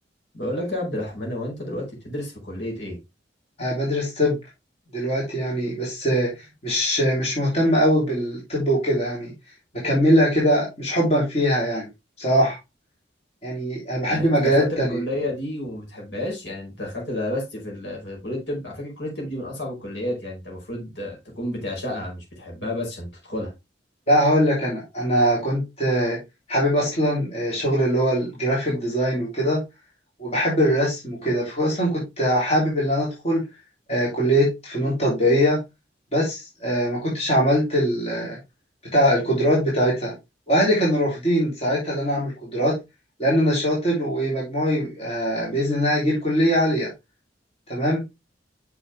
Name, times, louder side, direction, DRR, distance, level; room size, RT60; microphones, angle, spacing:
voice 1, 0.3-3.0 14.1-23.5, left 1 dB, 70° left, 5.0 m, -31 dB
voice 2, 3.6-4.4 4.9-6.3 6.6-9.3 9.8-11.9 12.2-12.6 13.4-15.0 24.1-26.2 26.5-29.6 30.2-33.4 33.9-35.6 36.1-38.4 38.9-40.1 40.5-42.7 43.2-46.9 47.7-48.0, equal, 35° left, 3.4 m, -22 dB
7.0 x 6.4 x 3.3 m
head